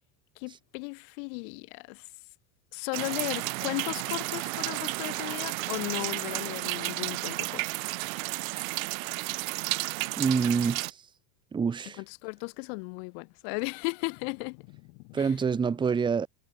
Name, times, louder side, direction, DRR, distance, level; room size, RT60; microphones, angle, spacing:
voice 1, 0.4-2.1 2.7-7.7 12.0-15.3, left 40 dB or more, 45° left, 1.1 m, -36 dB
sound 1, 2.9-10.9, right 23 dB, 65° right, 1.4 m, -32 dB
voice 2, 10.2-11.0 11.5-12.0 15.1-16.3, right 6 dB, 10° right, 1.5 m, -26 dB
supercardioid pair, 180°, 44 cm